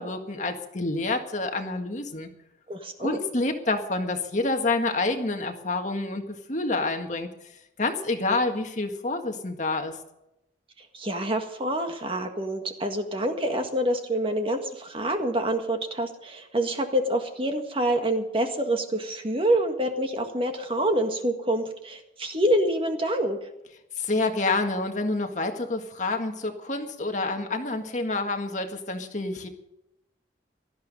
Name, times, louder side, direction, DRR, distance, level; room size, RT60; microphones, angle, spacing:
voice 1, 0.0-2.3 3.0-7.3 7.8-10.0 24.0-29.5, left 2 dB, 45° left, 4 dB, 1.8 m, -28 dB
voice 2, 2.7-3.2 10.8-23.5, right 1 dB, 30° right, 5 dB, 1.7 m, -27 dB
17.5 x 13.0 x 5.4 m, 0.85 s
head